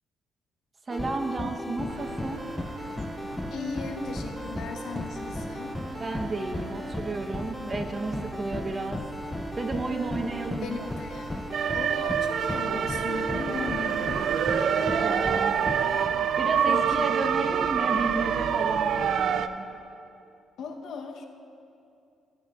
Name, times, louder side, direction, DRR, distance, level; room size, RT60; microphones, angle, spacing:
sound 1, 0.9-16.1, left 1 dB, 10° left, 0.4 m, -36 dB
voice 1, 0.9-2.4 6.0-9.0 9.5-10.9 14.9-15.6 16.4-19.7, right 3 dB, 35° right, 5 dB, 0.8 m, -33 dB
sound 2, 1.9-19.5, right 7 dB, 65° right, 0.4 m, -29 dB
voice 2, 3.5-5.8 10.6-11.3 11.7-14.2 16.5-17.5 20.6-21.3, left 5 dB, 70° left, 4 dB, 0.8 m, -37 dB
15.0 x 9.2 x 2.3 m, 2.6 s
cardioid pair, 80°, 0 cm